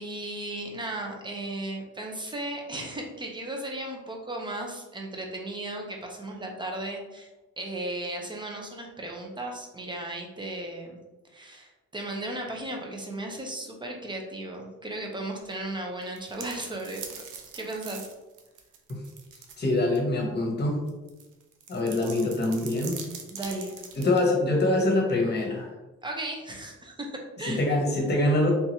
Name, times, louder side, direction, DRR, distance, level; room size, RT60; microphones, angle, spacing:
voice 1, 0.0-7.3 7.6-11.0 11.3-17.2 17.5-18.1 23.3-23.7 26.0-27.7, right 1 dB, 15° right, 1 dB, 0.8 m, -35 dB
sound 1, 16.0-19.6 20.0-20.1 20.9-24.2, right 6 dB, 85° right, 0.6 m, -42 dB
voice 2, 19.6-20.8 21.7-23.0 24.0-25.7 27.4-28.5, left 2 dB, 35° left, 0 dB, 1.2 m, -24 dB
3.6 x 2.8 x 2.9 m, 1.1 s
cardioid pair, 90°, 30 cm